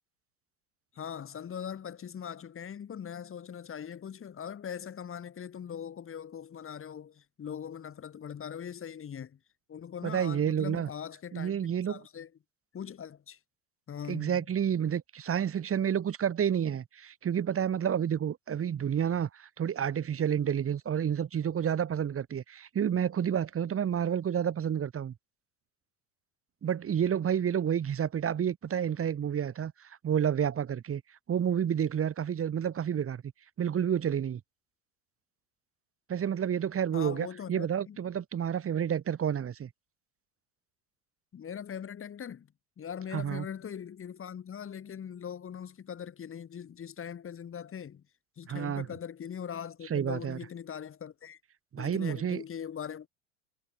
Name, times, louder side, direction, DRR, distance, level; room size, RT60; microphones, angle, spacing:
voice 1, 0.9-9.4 9.7-12.3 12.7-13.4 13.9-14.4 36.9-38.0 41.3-42.5 42.8-48.0 48.4-51.4 51.8-53.1, left 8 dB, 30° left, 6.9 m, -41 dB
voice 2, 10.0-10.9 11.3-12.0 14.1-25.1 26.6-31.0 31.3-33.2 33.6-34.4 36.1-39.7 43.1-43.5 48.5-48.9 49.9-50.4 51.7-52.4, right 8 dB, 35° right, 7.6 m, -30 dB
hypercardioid pair, 80°, 40 cm